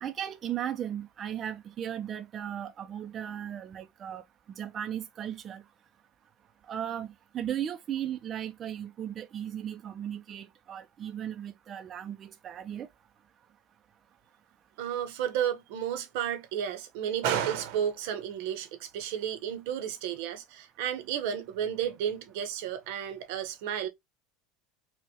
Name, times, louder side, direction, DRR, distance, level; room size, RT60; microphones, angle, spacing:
voice 1, 0.0-4.2 4.5-5.6 6.7-12.9, right 10 dB, 30° right, 0.3 m, -36 dB
voice 2, 14.8-23.9, right 9 dB, 70° right, 0.7 m, -32 dB
4.4 x 2.1 x 2.7 m
cardioid pair, 155°, 0 cm